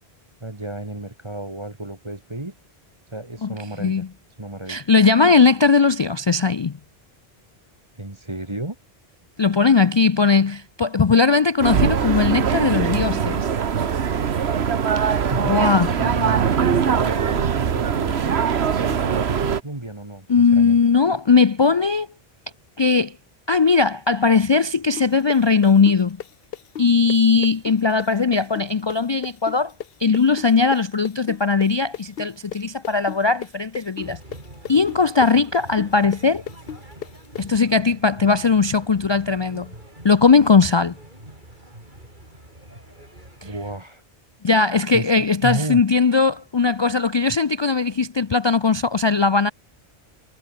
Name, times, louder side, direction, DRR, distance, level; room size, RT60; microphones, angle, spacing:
voice 1, 0.4-2.6 3.1-4.0 4.4-4.9 7.9-8.8 15.2-15.7 16.0-18.3 18.8-20.8 43.4-44.0 44.9-45.8, right 2 dB, 25° right, 2.3 m, -32 dB
voice 2, 4.7-6.8 9.4-13.5 15.0-15.2 15.5-15.9 20.3-22.1 22.8-23.1 23.5-26.2 26.8-29.7 30.0-34.2 34.7-36.4 37.4-39.7 40.0-40.9 43.4-43.5 44.4-49.5, left 4 dB, 40° left, 0.4 m, -18 dB
sound 1, 11.6-19.6, right 7 dB, 80° right, 1.3 m, -21 dB
sound 2, 25.0-32.6 32.8-37.4, left 9 dB, 65° left, 1.0 m, -34 dB
sound 3, 34.0-43.8, right 1 dB, 50° right, 7.0 m, -43 dB
omnidirectional pair, 1.1 m